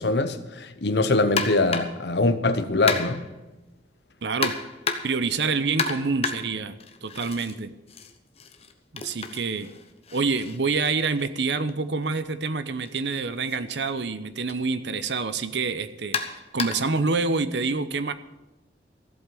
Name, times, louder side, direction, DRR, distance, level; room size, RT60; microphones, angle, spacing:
voice 1, 0.0-3.2, left 2 dB, 65° left, 9 dB, 1.0 m, -23 dB
sound 1, 1.4-2.1 2.9-3.4 4.4-5.3 5.8-7.5 7.9-11.7 12.8-13.0 13.5-13.6 14.5-14.6 16.1-17.0, left 5 dB, 35° left, 1.0 m, -32 dB
voice 2, 4.2-4.6 5.0-7.7 8.9-9.7 10.1-16.2 16.5-18.1, right 4 dB, 70° right, 12 dB, 0.8 m, -27 dB
14.5 x 8.2 x 7.6 m, 1.0 s
head